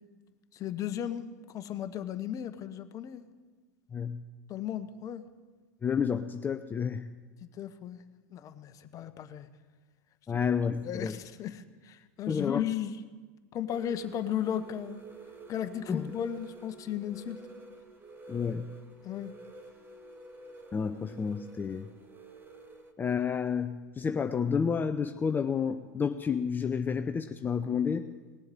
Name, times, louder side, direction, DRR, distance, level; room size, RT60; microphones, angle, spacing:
voice 1, 0.5-3.2 4.5-5.2 7.4-8.0 8.3-9.5 10.3-10.4 10.8-13.0 13.5-15.0 15.5-17.4 19.0-19.3, left 10 dB, 40° left, 11 dB, 1.0 m, -35 dB
voice 2, 3.9-4.2 5.8-7.1 10.3-11.2 12.3-12.6 15.9-16.1 18.3-18.7 20.7-21.9 23.0-28.1, left 6 dB, 20° left, 8 dB, 0.6 m, -30 dB
sound 1, 13.7-22.9, right 2 dB, 25° right, 1.6 m, -49 dB
18.5 x 7.8 x 9.3 m, 1.3 s
hypercardioid pair, 90°, 9 cm